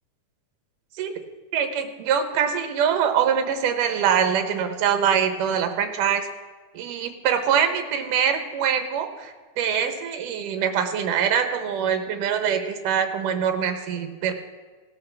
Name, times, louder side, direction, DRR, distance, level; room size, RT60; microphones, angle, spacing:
voice 1, 1.5-6.3 6.7-14.3, right 8 dB, 80° right, 6 dB, 2.6 m, -24 dB
17.5 x 12.0 x 3.4 m, 1.4 s
omnidirectional pair, 3.7 m